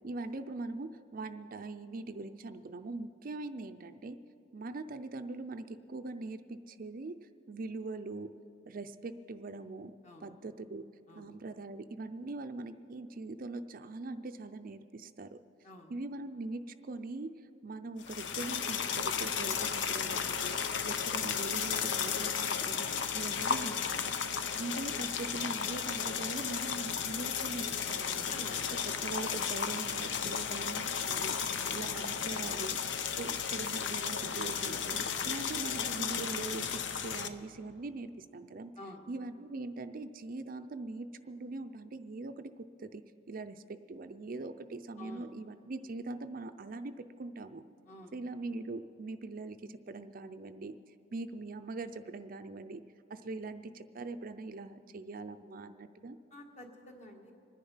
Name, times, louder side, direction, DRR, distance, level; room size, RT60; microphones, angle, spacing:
voice 1, 0.0-4.2 4.5-7.1 7.5-8.3 8.7-9.9 10.2-10.8 11.2-15.4 15.9-17.3 17.6-20.6 20.8-28.2 29.0-31.4 31.7-32.8 33.2-38.7 39.1-47.6 48.1-50.8 51.1-52.8 53.1-56.2, right 3 dB, 50° right, 9 dB, 0.5 m, -42 dB
sound 1, 18.0-37.3, left 7 dB, 75° left, 0.7 m, -34 dB
voice 2, 28.3-28.9 31.6-31.8 38.8-39.0 45.0-45.3 47.9-48.1 56.3-57.3, left 1 dB, 40° left, 2 dB, 1.8 m, -49 dB
25.5 x 10.0 x 5.6 m, 2.6 s
head